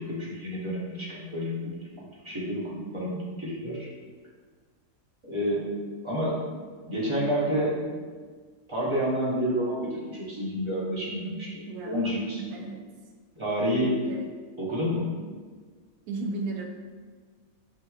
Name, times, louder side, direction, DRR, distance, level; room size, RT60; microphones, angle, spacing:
voice 1, 0.0-3.9 5.2-6.4 6.9-8.0 8.7-12.4 13.3-14.0 14.6-15.1, equal, 25° right, -7 dB, 0.7 m, -29 dB
voice 2, 11.6-12.8 14.0-14.3 16.1-16.7, right 3 dB, 80° right, 2 dB, 1.1 m, -35 dB
5.6 x 2.9 x 2.3 m, 1.5 s
omnidirectional pair, 1.5 m